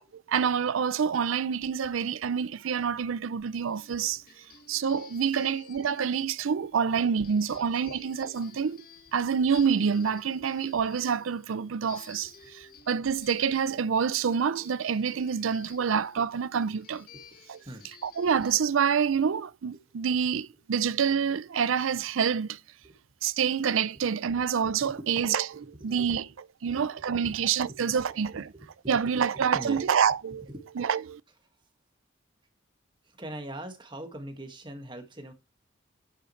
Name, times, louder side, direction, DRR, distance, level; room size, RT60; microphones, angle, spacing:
voice 1, 0.3-4.2 4.7-8.8 9.1-17.1 17.5-17.6 18.0-22.6 23.2-26.3 26.6-28.5 28.9-30.5 30.8-31.2, right 7 dB, 90° right, 0.5 m, -27 dB
sound 1, 3.5-18.5, left 6 dB, 50° left, 1.5 m, -53 dB
voice 2, 4.1-4.6 5.2-5.5 6.6-8.0 10.4-10.5 12.2-12.5 13.7-13.8 17.1-17.4 17.7-17.9 19.7-19.8 22.8-23.0 23.9-24.1 24.8-25.1 25.5-26.3 26.7-30.2 30.5-30.6 31.3-31.4 33.0-35.3, right 1 dB, 25° right, 1.8 m, -45 dB
10.5 x 8.7 x 3.2 m
head